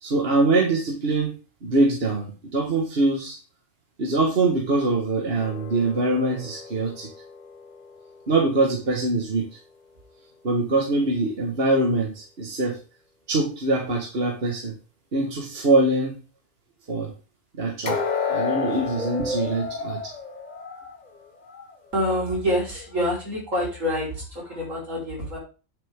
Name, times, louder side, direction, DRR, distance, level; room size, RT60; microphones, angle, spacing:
voice 1, 0.0-1.3 1.6-3.4 4.0-7.1 8.3-9.5 10.4-12.8 13.3-14.7 15.1-16.2 16.9-17.1 17.5-18.0 18.3-20.0, right 2 dB, 50° right, 0 dB, 1.9 m, -23 dB
sound 1, 5.4-8.5 17.8-21.8 22.1-22.3 22.9-23.0, left 5 dB, 35° left, 1.1 m, -32 dB
voice 2, 21.9-25.4, equal, 75° right, -4 dB, 5.2 m, -26 dB
9.8 x 7.2 x 3.7 m, 0.33 s
omnidirectional pair, 1.3 m